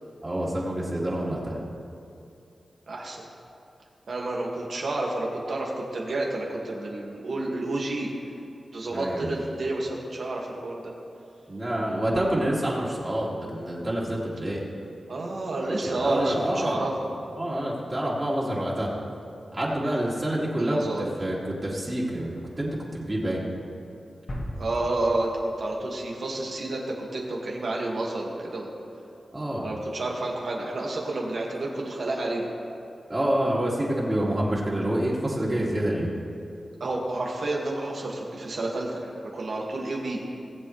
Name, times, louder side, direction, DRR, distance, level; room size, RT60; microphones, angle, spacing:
voice 1, 0.2-1.6 8.9-9.3 11.5-14.6 15.8-16.8 17.3-18.9 19.5-20.8 21.2-23.4 29.3-29.7 33.1-36.1, right 1 dB, 25° right, -6 dB, 2.8 m, -27 dB
voice 2, 2.9-3.2 4.1-8.1 8.7-10.9 15.1-17.0 20.6-21.0 24.6-28.7 29.6-32.5 36.8-40.2, right 2 dB, 70° right, -2 dB, 2.1 m, -30 dB
sound 1, 24.3-26.2, equal, 45° left, 2.7 m, -37 dB
20.5 x 7.5 x 3.3 m, 2.7 s
cardioid pair, 65°, 0 cm